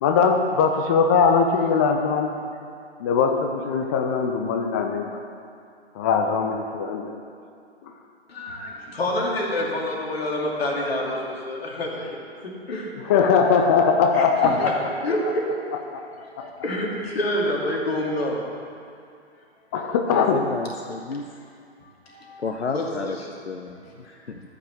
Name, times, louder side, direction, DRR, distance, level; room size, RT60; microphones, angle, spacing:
voice 1, 0.0-2.3 3.0-5.1 6.0-7.2 13.1-14.7 15.9-16.0 16.4-16.5 19.7-20.4, left 5 dB, 15° left, 4 dB, 0.3 m, -20 dB
voice 2, 8.3-12.2 12.7-12.9 14.1-14.7 15.0-15.5 16.2-18.5 22.0-22.4 22.7-23.3, left 1 dB, 65° left, -2 dB, 2.6 m, -27 dB
voice 3, 20.1-21.2 22.4-24.4, left 4 dB, 85° left, 4 dB, 0.7 m, -32 dB
13.5 x 6.1 x 6.8 m, 2.4 s
figure-of-eight pair, 120°, 33 cm